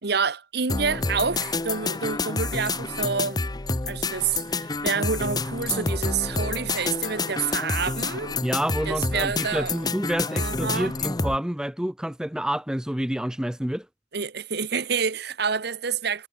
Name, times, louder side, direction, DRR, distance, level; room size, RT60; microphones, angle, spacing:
voice 1, 0.0-3.4 3.9-8.4 8.9-9.8 10.3-10.9 14.1-16.3, right 5 dB, 65° right, 1.1 m, -28 dB
sound 1, 0.7-11.4, left 3 dB, 20° left, 0.8 m, -28 dB
voice 2, 8.4-13.9, equal, 5° right, 0.5 m, -28 dB
head